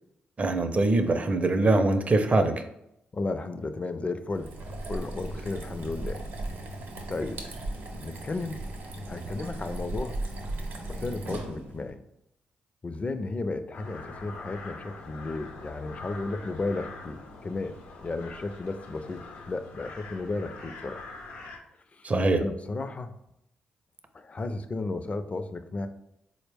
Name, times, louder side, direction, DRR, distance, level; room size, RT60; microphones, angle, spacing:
voice 1, 0.4-2.6 22.0-22.4, right 2 dB, 40° right, 8 dB, 0.5 m, -23 dB
voice 2, 3.1-4.5 4.9-6.2 7.1-7.4 8.0-8.6 9.1-10.2 11.0-12.0 12.8-19.2 19.5-21.0 22.0-22.1 22.4-23.1 24.1-25.9, left 3 dB, 35° left, 10 dB, 0.4 m, -33 dB
sound 1, 4.3-11.9, right 2 dB, 75° right, 0.7 m, -37 dB
sound 2, 13.7-21.6, left 3 dB, 80° left, 0.7 m, -44 dB
4.1 x 2.1 x 3.3 m, 0.81 s
supercardioid pair, 50°, 4 cm